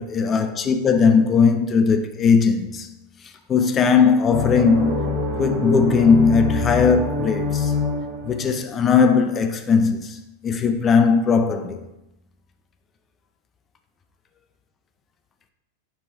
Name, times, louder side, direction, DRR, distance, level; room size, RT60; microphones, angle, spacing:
voice 1, 0.0-2.9 3.5-5.1 5.4-7.7 8.2-11.8, left 5 dB, 25° left, 0.4 m, -18 dB
sound 1, 4.3-8.7, left 3 dB, 20° right, 1.2 m, -25 dB
3.4 x 2.5 x 4.2 m
figure-of-eight pair, 90°, 0 cm